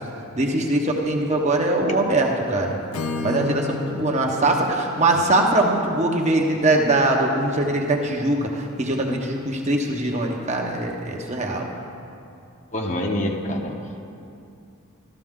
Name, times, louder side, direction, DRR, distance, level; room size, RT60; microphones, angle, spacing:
voice 1, 0.4-2.8 3.2-11.7, right 2 dB, 30° right, 1 dB, 1.0 m, -22 dB
Acoustic guitar / Strum, 2.9-6.9, left 4 dB, 90° left, 0.9 m, -34 dB
voice 2, 12.7-13.8, left 1 dB, 35° left, 1 dB, 1.1 m, -26 dB
13.5 x 13.5 x 3.7 m, 2.6 s
head